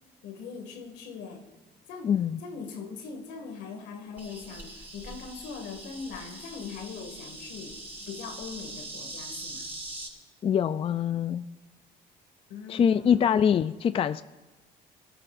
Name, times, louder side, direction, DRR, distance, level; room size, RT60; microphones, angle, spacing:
voice 1, 0.2-1.5 1.9-2.1 2.4-7.8 8.1-9.7 12.5-13.4, left 5 dB, 90° left, 4 dB, 2.2 m, -41 dB
voice 2, 2.0-2.4 10.4-11.5 12.7-14.2, left 8 dB, 35° left, 13 dB, 0.4 m, -24 dB
Insect, 4.2-10.1, right 2 dB, 10° right, 5.2 m, -42 dB
27.0 x 14.0 x 2.6 m, 1.2 s
cardioid pair, 110°, 17 cm